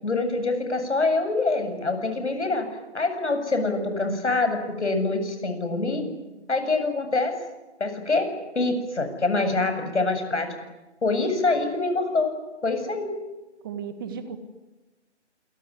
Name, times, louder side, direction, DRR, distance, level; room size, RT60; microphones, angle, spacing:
voice 1, 0.0-2.7 2.9-6.0 6.5-7.3 7.8-8.3 8.5-10.5 11.0-12.3 12.6-13.1, left 3 dB, 70° left, 6 dB, 7.8 m, -25 dB
voice 2, 9.4-9.7 12.9-13.0 13.6-14.4, right 7 dB, 20° right, 10 dB, 1.8 m, -36 dB
28.0 x 21.5 x 9.9 m, 1.1 s
figure-of-eight pair, 160°, 35 cm